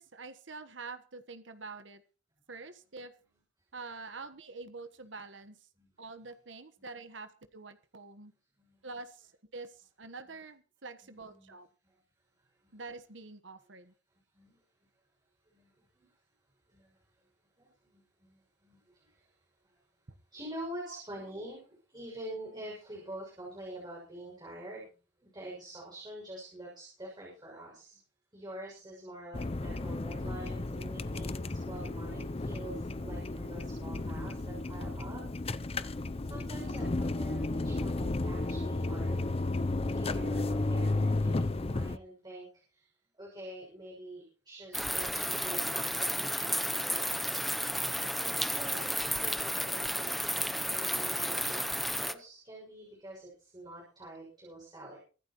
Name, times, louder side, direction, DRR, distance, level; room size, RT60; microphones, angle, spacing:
voice 1, 0.0-2.0 2.5-3.1 3.7-5.6 6.0-8.3 8.8-11.7 12.7-13.9 20.9-21.0, right 3 dB, 75° right, 9 dB, 1.4 m, -46 dB
voice 2, 11.0-11.6 11.8-12.0 12.3-12.8 14.3-14.9 15.5-16.2 16.7-17.3 17.6-20.0 20.3-24.9 25.2-28.0 28.3-35.9 36.2-39.6 39.8-42.9 43.2-47.4 48.1-55.0, right 1 dB, 25° right, -3 dB, 6.8 m, -47 dB
sound 1, 29.3-42.0, left 2 dB, 30° left, 0.6 m, -33 dB
sound 2, 44.7-52.1, equal, ahead, 0.8 m, -32 dB
24.5 x 12.0 x 3.1 m, 0.38 s
head